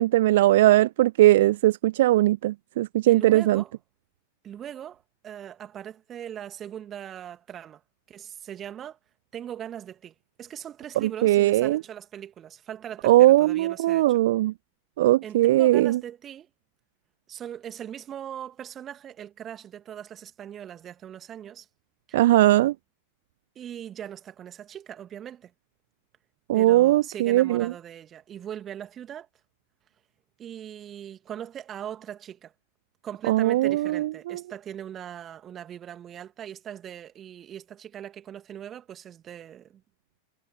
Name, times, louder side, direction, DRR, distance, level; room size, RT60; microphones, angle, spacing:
voice 1, 0.0-3.6 11.0-11.8 13.0-14.5 15.0-16.0 22.1-22.7 26.5-27.7 33.3-34.1, right 15 dB, 55° right, 0.4 m, -19 dB
voice 2, 3.1-3.7 4.4-7.8 8.1-9.0 9.3-14.2 15.2-16.5 17.3-21.7 22.1-22.3 23.5-25.5 26.5-29.3 30.4-32.5 33.0-39.8, right 10 dB, 25° right, 2.9 m, -40 dB
figure-of-eight pair, 90°, 0 cm